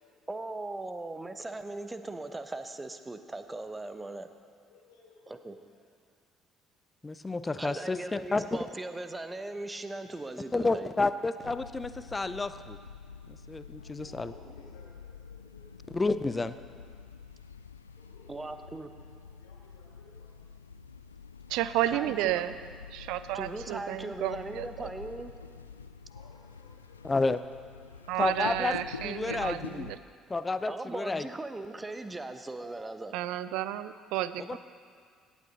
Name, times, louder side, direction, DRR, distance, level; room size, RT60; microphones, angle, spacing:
voice 1, 0.3-4.3 5.3-5.6 7.6-10.9 18.3-18.9 21.8-22.4 23.3-25.3 30.7-33.1, right 2 dB, 15° right, 9 dB, 0.8 m, -39 dB
voice 2, 4.6-5.8 13.7-15.7 17.9-20.4 26.1-28.5, left 3 dB, 70° left, -3 dB, 2.6 m, -59 dB
voice 3, 7.0-8.5 10.5-12.8 13.3-14.3 15.9-16.6 27.0-27.4 28.2-28.8 29.0-29.9 30.3-31.2 34.4-34.6, left 3 dB, 20° left, 13 dB, 0.5 m, -30 dB
sound 1, 11.4-30.0, left 5 dB, 90° left, 0.3 m, -47 dB
voice 4, 21.5-22.5 22.9-24.9 28.1-30.0 33.1-34.6, right 13 dB, 65° right, 14 dB, 0.4 m, -32 dB
17.0 x 8.5 x 4.0 m, 2.1 s
figure-of-eight pair, 50°, 0 cm